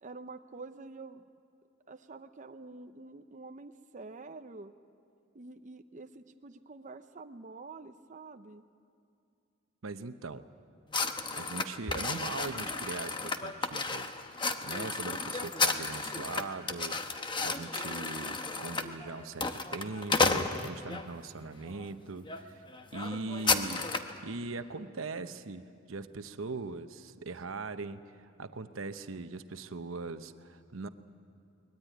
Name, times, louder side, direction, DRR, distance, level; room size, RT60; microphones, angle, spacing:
voice 1, 0.0-1.3 1.9-4.7 5.3-8.6, right 3 dB, 40° right, 7 dB, 0.7 m, -47 dB
voice 2, 9.8-10.5 11.4-17.0 17.4-22.6 22.9-23.9 24.2-30.9, right 3 dB, 85° right, 10 dB, 0.9 m, -40 dB
sound 1, 10.9-21.1 21.7-21.9 22.2-22.4 22.7-24.2, left 3 dB, 25° left, 1.0 m, -33 dB
23.5 x 20.5 x 9.2 m, 2.5 s
head